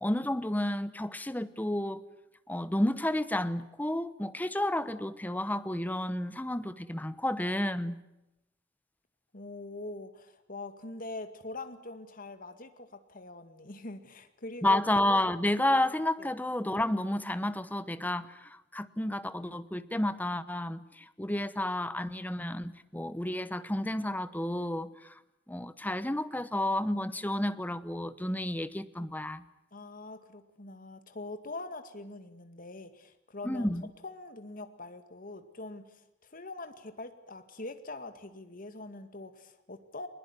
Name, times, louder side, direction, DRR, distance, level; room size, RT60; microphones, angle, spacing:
voice 1, 0.0-2.0 2.5-8.0 14.6-25.1 25.5-29.5 33.4-33.9, left 1 dB, 10° left, 14 dB, 0.9 m, -31 dB
voice 2, 9.3-14.8 16.2-16.3 29.7-33.7 34.0-40.1, left 2 dB, 50° left, 8 dB, 2.1 m, -43 dB
22.5 x 20.5 x 9.8 m, 0.90 s
head